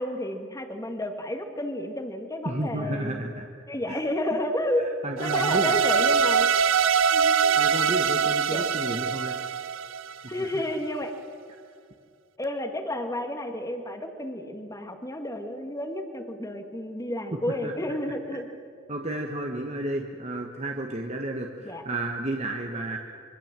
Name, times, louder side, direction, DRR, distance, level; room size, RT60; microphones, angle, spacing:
voice 1, 0.0-3.3 3.7-4.9 5.2-6.7 7.1-7.6 8.5-8.7 10.3-11.1 12.4-18.5 21.6-21.8, left 1 dB, 15° left, 5 dB, 2.1 m, -31 dB
voice 2, 2.4-3.5 3.9-4.0 5.0-5.9 7.5-9.3 17.5-17.7 18.9-23.0, right 1 dB, 35° right, 2 dB, 1.5 m, -32 dB
sound 1, 5.2-10.4, right 6 dB, 80° right, 0.8 m, -23 dB
26.0 x 24.0 x 7.6 m, 2.2 s
head